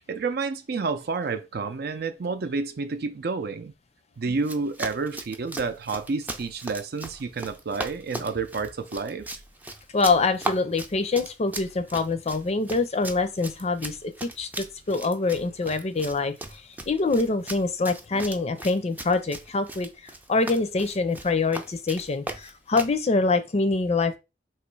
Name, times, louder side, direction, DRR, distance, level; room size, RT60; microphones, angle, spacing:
voice 1, 0.0-3.7 4.2-9.3, right 4 dB, 60° right, 0.5 m, -30 dB
Run, 4.4-23.0, right 2 dB, 10° right, 0.4 m, -38 dB
voice 2, 9.9-24.2, left 3 dB, 40° left, 0.5 m, -25 dB
3.1 x 2.9 x 4.6 m
head